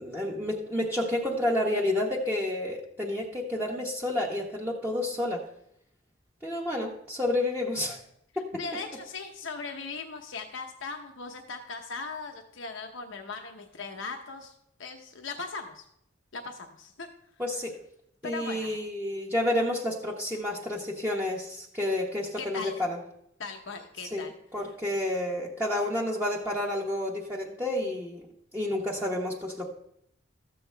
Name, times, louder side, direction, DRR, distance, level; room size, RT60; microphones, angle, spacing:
voice 1, 0.0-5.5 6.4-8.0 8.4-8.5 17.4-17.7 18.2-23.0 24.1-24.2 24.5-28.2 28.5-29.7, left 1 dB, 10° right, -4 dB, 0.9 m, -30 dB
voice 2, 8.6-14.5 14.8-15.9 16.3-17.1 18.2-18.8 22.4-22.8 23.4-24.3 24.6-24.7, left 4 dB, 85° left, 4 dB, 0.8 m, -39 dB
13.5 x 7.7 x 3.3 m, 0.76 s
head